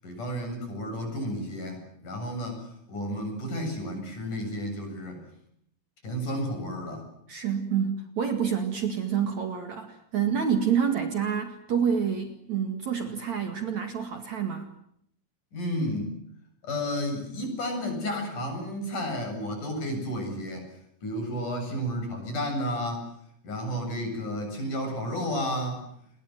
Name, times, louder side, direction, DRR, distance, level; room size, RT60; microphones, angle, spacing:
voice 1, 0.0-5.2 6.0-7.1 15.5-16.1 16.6-20.7 21.0-23.1 23.4-25.9, equal, 50° left, 5 dB, 9.0 m, -32 dB
voice 2, 7.3-14.7, right 7 dB, 50° right, 7 dB, 3.0 m, -28 dB
29.0 x 22.0 x 7.8 m, 0.70 s
omnidirectional pair, 4.7 m